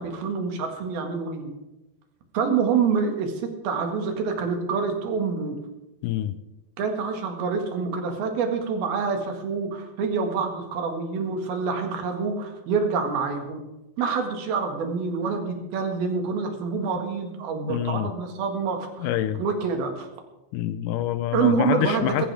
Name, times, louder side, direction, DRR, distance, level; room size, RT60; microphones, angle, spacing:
voice 1, 0.0-1.5 2.3-5.6 6.8-13.6 14.0-19.1 19.4-20.1 21.3-22.3, right 5 dB, 75° right, 4 dB, 3.7 m, -26 dB
voice 2, 6.0-6.4 17.7-18.1 19.0-19.4 20.5-22.3, left 13 dB, 90° left, 11 dB, 1.8 m, -26 dB
20.5 x 15.0 x 3.5 m, 1.0 s
omnidirectional pair, 4.5 m